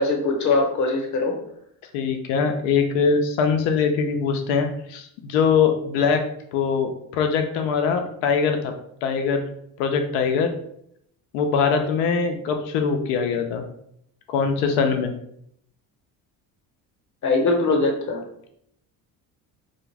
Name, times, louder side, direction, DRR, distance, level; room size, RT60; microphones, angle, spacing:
voice 1, 0.0-1.3 17.2-18.2, left 3 dB, 35° left, 2 dB, 0.8 m, -21 dB
voice 2, 1.9-6.2 6.5-8.7 9.0-9.4 9.8-10.5 11.3-13.6 14.3-15.1, left 5 dB, 75° left, 5 dB, 0.5 m, -22 dB
2.5 x 2.2 x 3.1 m, 0.71 s
hypercardioid pair, 60°, 48 cm